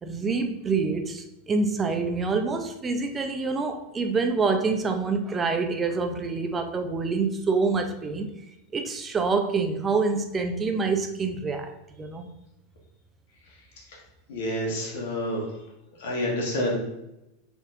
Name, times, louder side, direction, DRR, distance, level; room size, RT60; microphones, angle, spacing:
voice 1, 0.0-8.3 8.7-11.7 12.0-12.3, right 4 dB, 25° right, 6 dB, 0.4 m, -26 dB
voice 2, 14.3-15.4 16.0-16.8, left 1 dB, 70° left, -2 dB, 1.3 m, -28 dB
4.0 x 3.5 x 2.5 m, 0.91 s
hypercardioid pair, 100°, 0 cm